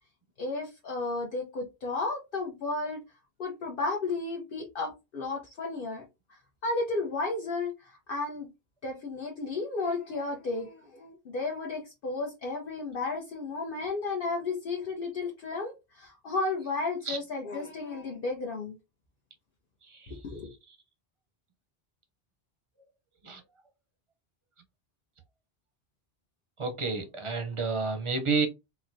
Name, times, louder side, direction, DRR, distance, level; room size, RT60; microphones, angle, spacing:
voice 1, 0.4-3.0 3.4-6.0 6.3-8.5 8.8-18.8 20.2-20.5, left 3 dB, 65° left, 0.8 m, -33 dB
voice 2, 19.9-20.2 23.2-23.4 26.6-28.5, right 4 dB, 40° right, 0.5 m, -30 dB
4.2 x 2.0 x 2.5 m
omnidirectional pair, 1.0 m